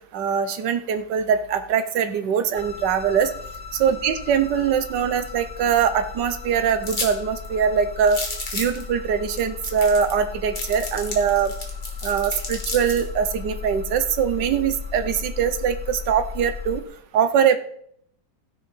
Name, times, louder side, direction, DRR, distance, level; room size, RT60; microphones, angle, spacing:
voice 1, 0.1-3.3 3.7-8.2 8.5-11.5 12.0-16.8 17.1-17.6, right 7 dB, 70° right, 10 dB, 1.5 m, -22 dB
sound 1, 2.5-16.8, left 5 dB, 60° left, 1.9 m, -36 dB
sound 2, 6.8-7.1 7.4-7.5 8.1-8.8 9.4-9.5 9.6-10.2 10.6-13.0, left 2 dB, 25° left, 2.6 m, -31 dB
15.5 x 6.9 x 5.4 m, 0.69 s
omnidirectional pair, 2.0 m